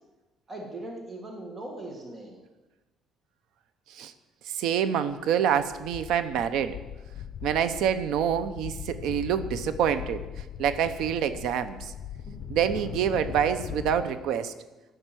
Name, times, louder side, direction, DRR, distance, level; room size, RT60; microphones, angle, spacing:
voice 1, 0.5-2.4 12.3-12.4, right 1 dB, 25° right, 1 dB, 1.5 m, -39 dB
voice 2, 4.5-6.8 7.4-10.2 10.6-11.9 12.5-14.5, right 8 dB, 70° right, 12 dB, 0.7 m, -26 dB
sound 1, 5.3-5.4 5.6-14.0, left 9 dB, 50° left, 0.8 m, -40 dB
13.0 x 6.6 x 9.0 m, 1.1 s
cardioid pair, 170°, 0 cm